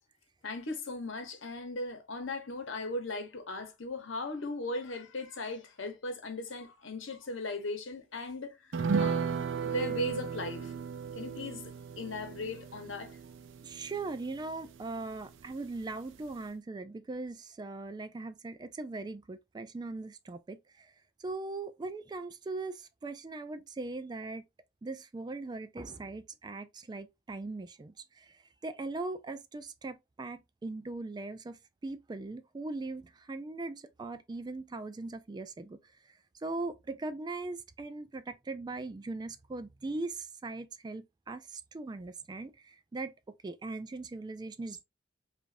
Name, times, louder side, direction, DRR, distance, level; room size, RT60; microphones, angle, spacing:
voice 1, 0.4-8.6 9.0-10.7 11.1-13.2, left 2 dB, 75° left, 1.0 m, -38 dB
sound 1, 8.7-15.5 15.8-15.9 16.3-16.4, right 6 dB, 75° right, 0.5 m, -35 dB
voice 2, 13.6-20.6 21.2-24.4 24.8-27.9 28.6-31.6 31.8-35.8 36.4-42.5 42.9-43.1 43.4-44.8, right 3 dB, 20° right, 0.3 m, -40 dB
4.9 x 2.5 x 2.6 m
head